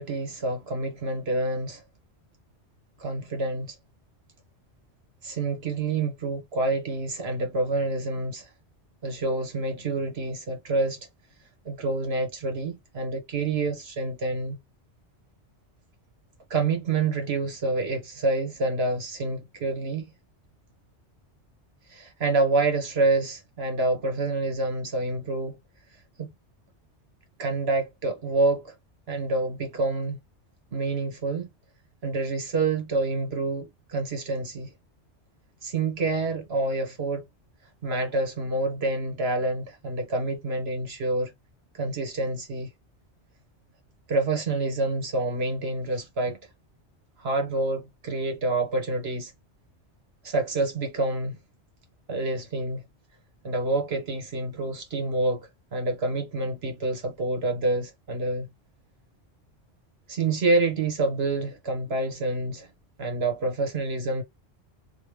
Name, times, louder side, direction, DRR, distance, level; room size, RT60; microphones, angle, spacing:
voice 1, 0.0-1.8 3.0-3.7 5.2-8.5 9.0-11.0 11.6-14.6 16.5-20.1 21.9-25.6 26.2-26.3 27.4-28.7 29.1-30.2 30.7-31.5 32.0-34.7 35.6-37.2 37.8-41.3 41.7-42.7 44.1-46.4 47.2-49.3 50.2-51.4 52.1-52.8 53.4-58.5 60.1-62.7 63.0-64.2, right 2 dB, 60° right, 1.6 m, -27 dB
3.1 x 3.1 x 3.3 m
omnidirectional pair, 1.2 m